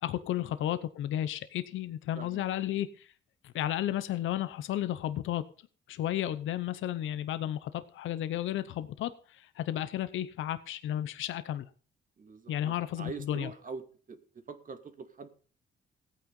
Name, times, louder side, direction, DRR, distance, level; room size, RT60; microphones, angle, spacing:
voice 1, 0.0-3.1 3.4-5.4 5.9-11.6 12.5-13.5, left 12 dB, 80° left, 12 dB, 0.9 m, -33 dB
voice 2, 12.2-14.2 14.5-15.3, right 5 dB, 40° right, 7 dB, 2.4 m, -44 dB
15.5 x 9.2 x 5.4 m, 0.39 s
cardioid pair, 90°, 20 cm